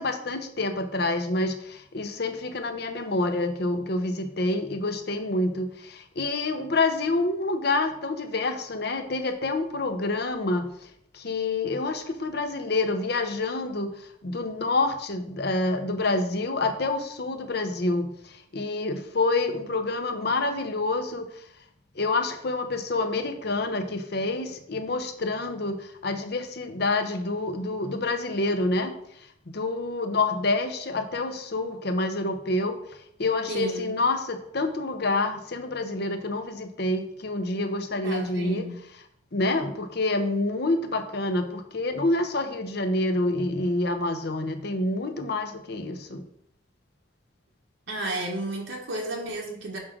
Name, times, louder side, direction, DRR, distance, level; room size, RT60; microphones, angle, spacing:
voice 1, 0.0-10.9 11.1-21.5 21.9-29.0 29.5-32.8 33.2-38.7 39.3-46.3, left 2 dB, 55° left, 7 dB, 0.8 m, -27 dB
voice 2, 33.5-33.9 38.0-38.7 47.9-49.8, right 2 dB, 75° right, -1 dB, 1.4 m, -32 dB
6.4 x 3.7 x 6.1 m, 0.73 s
head